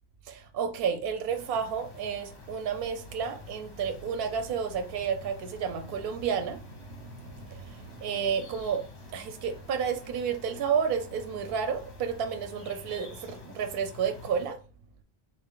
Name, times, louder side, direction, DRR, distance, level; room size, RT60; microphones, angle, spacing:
voice 1, 0.2-14.6, right 7 dB, 70° right, 0.7 m, -31 dB
sound 1, 1.3-14.5, left 5 dB, 90° left, 1.3 m, -49 dB
3.8 x 2.3 x 3.7 m
omnidirectional pair, 1.1 m